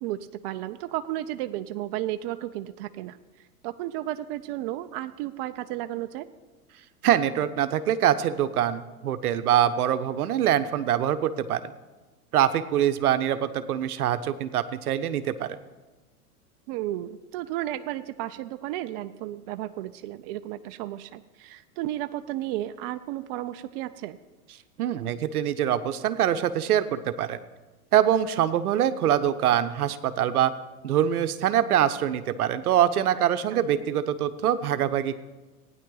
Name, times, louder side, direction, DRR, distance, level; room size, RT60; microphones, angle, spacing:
voice 1, 0.0-6.3 16.7-24.2 33.2-33.3 33.5-33.6, right 14 dB, 40° right, 10 dB, 0.5 m, -33 dB
voice 2, 7.0-11.6 12.3-15.6 24.8-27.4 27.9-30.5 30.8-35.2, right 10 dB, 75° right, 11 dB, 0.9 m, -24 dB
16.0 x 9.7 x 3.9 m, 1.2 s
hypercardioid pair, 110°, 45 cm